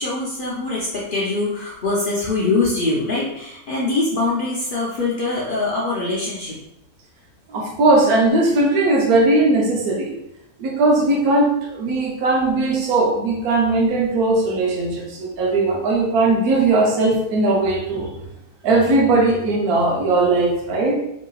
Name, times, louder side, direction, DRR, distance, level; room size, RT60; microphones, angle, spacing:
voice 1, 0.0-6.6, left 3 dB, 65° left, -6 dB, 0.5 m, -23 dB
voice 2, 7.5-10.1 10.6-18.1 18.6-20.9, right 2 dB, 80° right, 0 dB, 1.2 m, -18 dB
3.1 x 2.8 x 2.3 m, 0.81 s
omnidirectional pair, 1.6 m